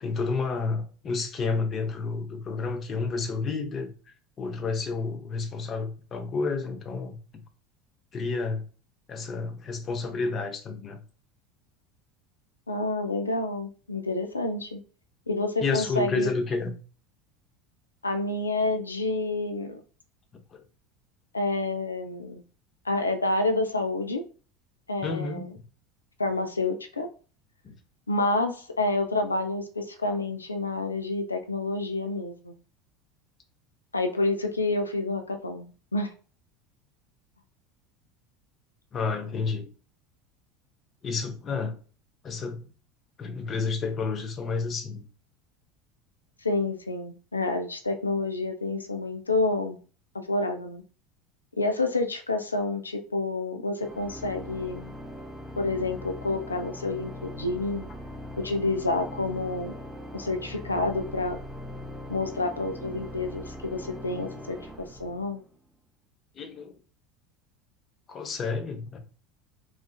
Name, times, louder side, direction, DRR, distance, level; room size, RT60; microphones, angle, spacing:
voice 1, 0.0-3.9 4.4-7.2 8.1-8.6 9.1-11.0 15.6-16.7 20.5-20.6 25.0-25.6 27.6-27.8 38.9-39.7 41.0-41.8 42.2-42.7 43.2-45.1 66.4-66.7 68.1-69.0, left 4 dB, 35° left, 0.7 m, -30 dB
voice 2, 12.7-14.8 15.3-16.3 18.0-19.8 21.3-22.4 22.8-24.2 24.9-25.5 26.2-27.1 28.1-32.5 33.9-36.1 46.4-49.8 50.1-50.8 51.6-54.9 55.6-57.9 58.4-59.7 60.1-61.4 62.1-64.6 65.0-65.4, left 2 dB, 85° left, 0.4 m, -28 dB
Organ, 53.8-65.6, left 1 dB, ahead, 0.5 m, -41 dB
3.8 x 2.4 x 2.2 m
figure-of-eight pair, 75°, 0 cm